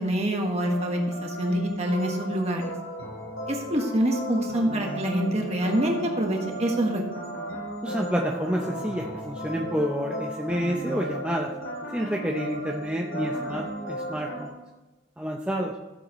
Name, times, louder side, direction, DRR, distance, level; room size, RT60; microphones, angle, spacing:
voice 1, 0.0-2.7 3.5-7.0, right 1 dB, 30° right, 1 dB, 1.7 m, -26 dB
sound 1, 0.6-14.5, right 1 dB, 75° left, 2.9 m, -35 dB
voice 2, 7.8-11.5 11.9-14.5 15.2-15.7, equal, 5° right, -1 dB, 0.6 m, -29 dB
15.5 x 7.7 x 3.1 m, 1.1 s
head